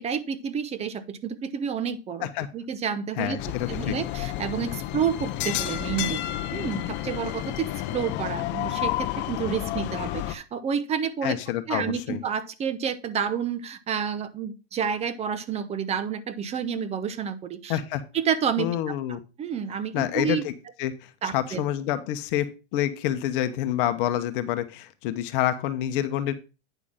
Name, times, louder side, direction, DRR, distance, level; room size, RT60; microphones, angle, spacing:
voice 1, 0.0-2.3 2.5-3.4 3.7-6.2 6.5-7.7 7.9-11.4 11.7-17.8 18.1-18.9 19.4-20.4 21.2-21.6, right 7 dB, 20° right, 13 dB, 0.7 m, -29 dB
voice 2, 3.2-4.0 11.2-12.2 17.7-18.0 18.6-19.2 19.9-20.5 20.8-26.3, left 12 dB, 50° left, 10 dB, 1.0 m, -28 dB
sound 1, 3.4-10.3, left 14 dB, 35° left, 0.7 m, -30 dB
9.0 x 5.9 x 3.6 m, 0.31 s
supercardioid pair, 135°, 33 cm